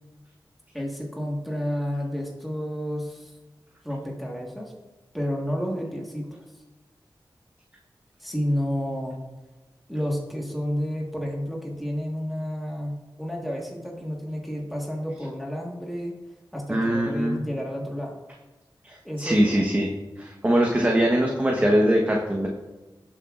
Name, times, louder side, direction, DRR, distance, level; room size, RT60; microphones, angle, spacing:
voice 1, 0.7-3.3 3.8-4.7 5.1-6.4 8.2-9.2 9.9-16.2 16.5-18.2 19.0-19.6, equal, ahead, -2 dB, 1.6 m, -30 dB
voice 2, 16.7-17.4 18.8-19.9 20.2-22.5, right 1 dB, 20° right, -1 dB, 1.2 m, -22 dB
17.5 x 7.2 x 2.5 m, 1.2 s
wide cardioid pair, 90°, 8 cm